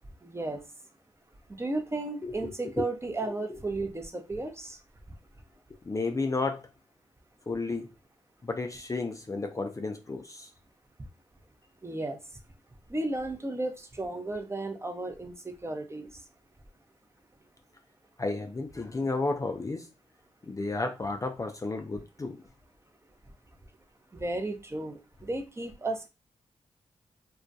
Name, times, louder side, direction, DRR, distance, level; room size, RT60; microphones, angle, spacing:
voice 1, 0.2-0.6 1.6-4.8 11.8-12.2 12.9-16.1 24.1-26.1, right 2 dB, 20° right, 0.6 m, -34 dB
voice 2, 2.2-2.7 3.2-3.3 5.9-6.6 7.5-7.9 8.4-10.5 18.2-19.9 20.5-22.4, left 3 dB, 25° left, 0.4 m, -32 dB
2.3 x 2.1 x 2.6 m
supercardioid pair, 40°, 12 cm